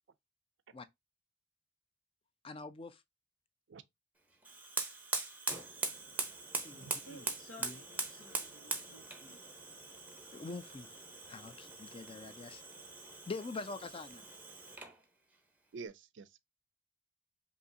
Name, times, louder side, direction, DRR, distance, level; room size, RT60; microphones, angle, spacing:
voice 1, 2.4-3.0 6.6-7.3 7.6-7.8 10.3-11.0 11.3-12.6 13.3-14.3, left 3 dB, 25° left, 0.4 m, -44 dB
Fire, 4.4-15.0, right 3 dB, 10° right, 0.7 m, -42 dB
voice 2, 7.1-9.4, left 1 dB, 85° left, 1.4 m, -55 dB
voice 3, 15.7-16.4, right 4 dB, 60° right, 0.4 m, -48 dB
5.3 x 2.9 x 2.6 m
head